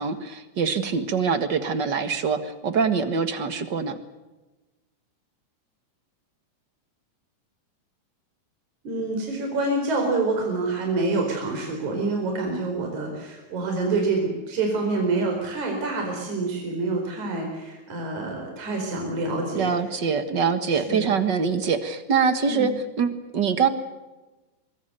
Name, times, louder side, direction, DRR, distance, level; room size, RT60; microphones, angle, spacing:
voice 1, 0.0-4.0 19.5-22.7 23.0-23.7, right 6 dB, 45° right, 10 dB, 1.7 m, -24 dB
voice 2, 8.8-19.7 20.7-21.1 22.5-22.7, right 3 dB, 60° right, 1 dB, 5.8 m, -27 dB
24.5 x 23.0 x 6.8 m, 1.1 s
omnidirectional pair, 3.8 m